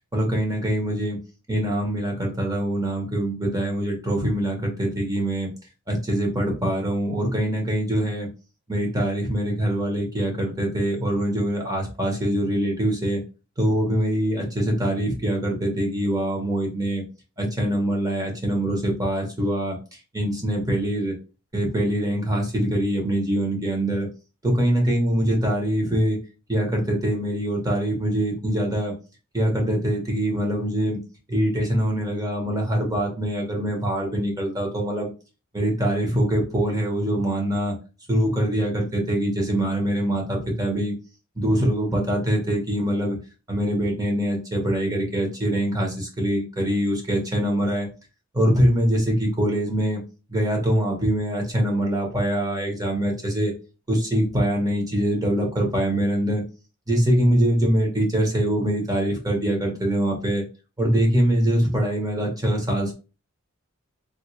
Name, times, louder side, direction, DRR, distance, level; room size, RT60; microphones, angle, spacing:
voice 1, 0.1-1.2 1.5-5.5 5.9-8.3 8.7-13.2 13.6-17.0 17.4-19.8 20.1-21.1 21.5-24.1 24.4-26.2 26.5-28.9 29.3-31.0 31.3-35.1 35.5-37.7 38.1-40.9 41.4-43.1 43.5-47.9 48.3-50.0 50.3-53.5 53.9-56.4 56.9-60.4 60.8-62.9, right 1 dB, 15° right, 0 dB, 0.9 m, -23 dB
3.5 x 2.3 x 3.1 m, 0.33 s
head